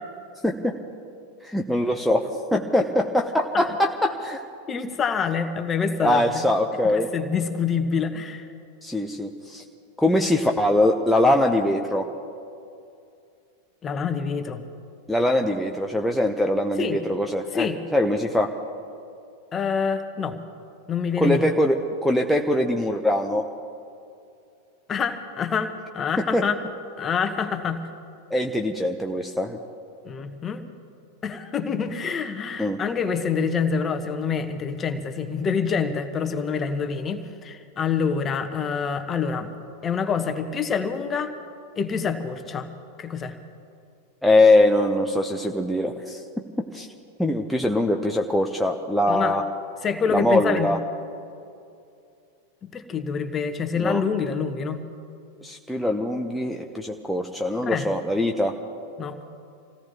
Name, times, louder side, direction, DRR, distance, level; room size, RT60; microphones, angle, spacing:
voice 1, 0.4-0.7 1.4-4.4 6.0-7.1 8.8-9.6 10.0-12.1 15.1-18.5 21.2-21.8 22.0-23.5 26.3-26.4 28.3-29.6 32.6-32.8 44.2-46.2 46.7-46.9 47.2-49.4 50.1-50.8 53.8-54.0 55.4-58.5, left 1 dB, ahead, 1 dB, 0.9 m, -22 dB
voice 2, 4.7-6.4 6.8-8.5 13.8-14.6 16.8-17.0 17.5-17.8 19.5-20.4 20.9-21.4 24.9-26.6 27.0-27.8 30.0-30.6 31.2-39.5 39.8-41.3 41.8-42.7 43.0-43.3 49.1-49.3 49.8-50.7 52.6-54.8 57.7-57.9 59.0-59.2, left 6 dB, 25° left, 8 dB, 1.3 m, -26 dB
27.5 x 17.0 x 3.0 m, 2.5 s
figure-of-eight pair, 90°, 0 cm